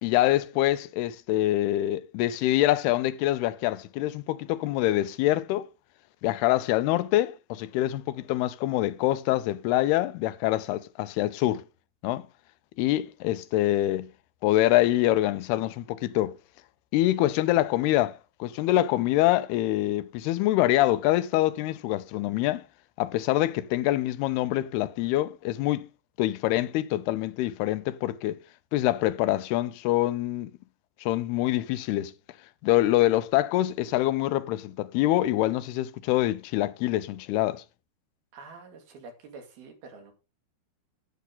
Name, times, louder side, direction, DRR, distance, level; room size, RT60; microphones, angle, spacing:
voice 1, 0.0-5.7 6.2-11.6 12.0-12.2 12.8-14.1 14.4-16.4 16.9-22.6 23.0-25.9 26.2-28.4 28.7-30.5 31.0-32.1 32.6-37.6, left 15 dB, 90° left, 2.7 m, -25 dB
voice 2, 38.3-40.1, right 4 dB, 75° right, 4.3 m, -47 dB
11.0 x 9.4 x 3.9 m
omnidirectional pair, 4.5 m